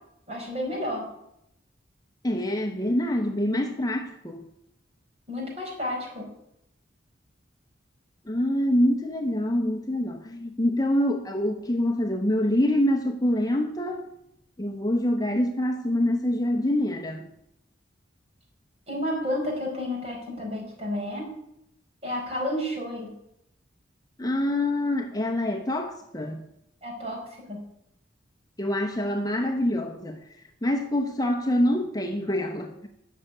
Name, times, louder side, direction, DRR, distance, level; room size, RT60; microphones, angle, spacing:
voice 1, 0.3-1.1 5.3-6.3 18.9-21.3 22.0-23.1 26.8-27.2 27.5-27.6, left 1 dB, 30° right, 5.0 m, -31 dB
voice 2, 2.2-4.5 8.2-14.0 14.6-17.3 24.2-26.4 28.6-30.2 30.6-32.9, left 1 dB, 20° left, 0.9 m, -25 dB
13.0 x 6.7 x 9.9 m
head